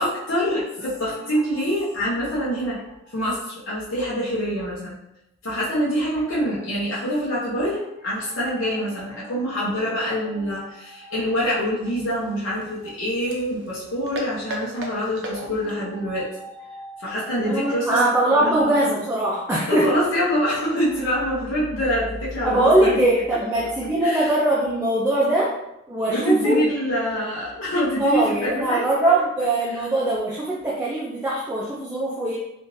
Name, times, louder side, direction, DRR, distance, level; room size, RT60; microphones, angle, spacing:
voice 1, 0.0-2.8 3.1-5.0 5.4-18.9 19.3-19.4 19.7-23.0 23.6-24.4 26.1-29.2 29.7-29.9, equal, 80° left, -8 dB, 0.8 m, -25 dB
sound 1, 11.8-15.9, right 1 dB, 60° right, 0.6 m, -37 dB
voice 2, 17.4-20.0 22.4-25.5 25.9-26.6 28.0-32.4, right 1 dB, 10° right, -6 dB, 0.4 m, -21 dB
3.6 x 2.5 x 2.6 m, 0.84 s
head